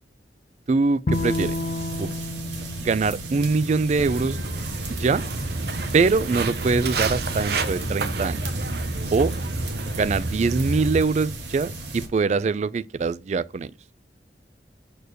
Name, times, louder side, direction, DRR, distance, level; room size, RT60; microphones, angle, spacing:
voice 1, 0.7-1.6 2.0-2.1 2.8-4.4 4.9-5.2 5.9-8.4 9.1-9.3 10.0-13.7, right 4 dB, 40° right, 0.3 m, -23 dB
Bowed string instrument, 1.1-4.3, left 2 dB, 50° left, 0.4 m, -31 dB
sound 1, 1.1-12.1, right 2 dB, 85° right, 1.9 m, -35 dB
Walk footsteps, 4.0-11.0, right 2 dB, 60° right, 0.9 m, -29 dB
6.8 x 4.4 x 6.2 m
head